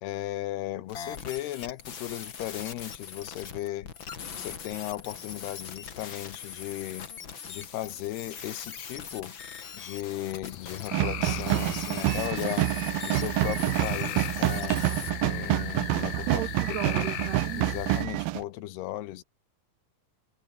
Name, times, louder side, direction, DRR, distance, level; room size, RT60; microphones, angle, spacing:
voice 1, 0.0-3.9 4.3-7.1 7.5-9.4 9.7-12.7 13.0-14.8 15.2-16.4 17.0-17.1 17.6-19.2, left 15 dB, 90° left, 3.3 m, -36 dB
sound 1, 0.9-10.9 11.2-15.1, left 7 dB, 40° left, 2.1 m, -41 dB
sound 2, 10.5-18.0, left 13 dB, 70° left, 3.0 m, -38 dB
sound 3, 10.9-18.4, right 16 dB, 75° right, 2.6 m, -27 dB
voice 2, 16.3-17.6, right 14 dB, 90° right, 3.4 m, -35 dB
omnidirectional pair, 4.5 m